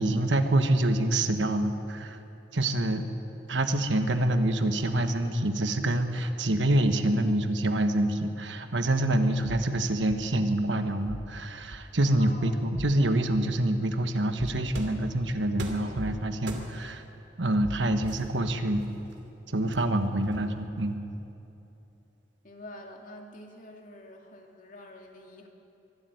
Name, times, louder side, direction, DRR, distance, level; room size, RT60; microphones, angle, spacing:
voice 1, 0.0-2.2 2.5-3.0 3.5-17.0 17.4-18.8 19.5-21.0, right 1 dB, 85° right, 7 dB, 1.4 m, -26 dB
sound 1, 11.0-11.3 11.7-11.8 12.7-13.0 13.3-13.4 14.4-14.6 15.0-15.1 16.0-16.2 16.6-16.7 17.6-17.8 18.2-18.4, right 1 dB, 45° right, 1.0 m, -40 dB
voice 2, 12.2-13.1 14.5-14.7 15.0-15.1 22.4-25.5, left 1 dB, 45° left, 1 dB, 2.5 m, -47 dB
sound 2, 14.7-15.1 15.6-15.9 16.5-16.9 18.0-19.1 19.7-20.7, right 1 dB, 70° right, 2.6 m, -40 dB
23.5 x 12.5 x 9.4 m, 2.9 s
head